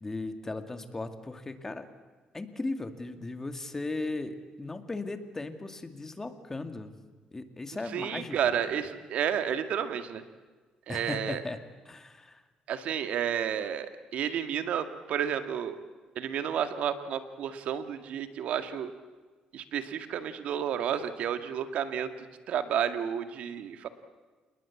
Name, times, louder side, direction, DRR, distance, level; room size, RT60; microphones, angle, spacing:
voice 1, 0.0-1.9 2.3-6.9 7.3-8.6 10.9-11.6 11.8-12.4, left 2 dB, 20° left, 8 dB, 2.3 m, -37 dB
voice 2, 7.9-10.2 10.9-11.4 12.7-15.8 16.2-18.9 19.5-22.1 22.5-23.9, right 9 dB, 70° right, 9 dB, 2.0 m, -31 dB
28.0 x 20.0 x 8.5 m, 1.4 s
cardioid pair, 105°, 2 cm